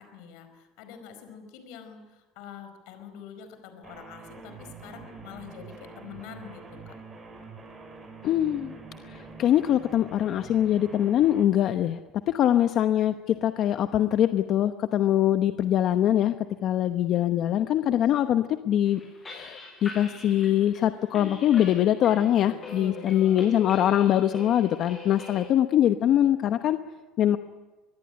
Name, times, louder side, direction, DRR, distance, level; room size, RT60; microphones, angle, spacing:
voice 1, 0.0-7.0 22.4-23.6, left 7 dB, 70° left, 8 dB, 4.6 m, -45 dB
sound 1, 3.8-11.4, right 4 dB, 20° right, 6.8 m, -45 dB
voice 2, 8.2-8.8 9.0-12.0 12.3-16.3 16.6-19.0 19.3-26.8 27.2-27.4, left 11 dB, 45° left, 8 dB, 0.9 m, -23 dB
sound 2, 18.9-25.5, left 2 dB, 20° left, 7.4 m, -43 dB
24.0 x 20.5 x 10.0 m, 1.2 s
cardioid pair, 150°, 0 cm